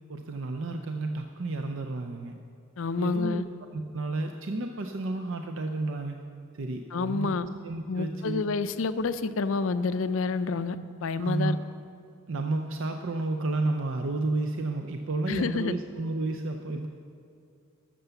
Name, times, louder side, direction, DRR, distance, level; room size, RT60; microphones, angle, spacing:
voice 1, 0.1-2.3 3.0-3.4 3.7-6.2 6.5-8.4 11.2-11.6 12.3-16.9, right 2 dB, 60° right, 4 dB, 0.5 m, -31 dB
voice 2, 2.8-3.4 6.9-7.5 7.9-11.6 15.3-15.7, left 4 dB, 60° left, 13 dB, 0.4 m, -28 dB
13.5 x 6.8 x 6.9 m, 2.4 s
head